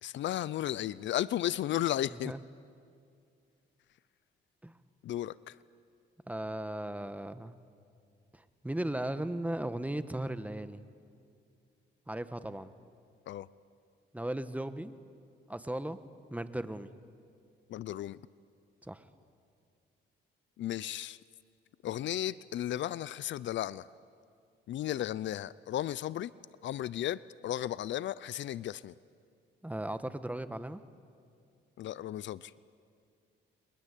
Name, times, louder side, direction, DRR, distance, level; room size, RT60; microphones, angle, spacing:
voice 1, 0.0-2.3 5.0-5.6 13.3-13.5 17.7-18.2 20.6-21.2 21.8-23.9 24.7-26.3 26.6-28.9 31.8-32.5, left 12 dB, 70° left, 19 dB, 0.6 m, -34 dB
voice 2, 6.3-7.5 8.3-10.8 12.1-12.7 14.1-14.9 15.5-16.0 16.3-16.9 18.8-19.0 29.6-30.8, right 1 dB, 5° right, 12 dB, 1.3 m, -37 dB
30.0 x 23.5 x 8.4 m, 2.3 s
cardioid pair, 90°, 20 cm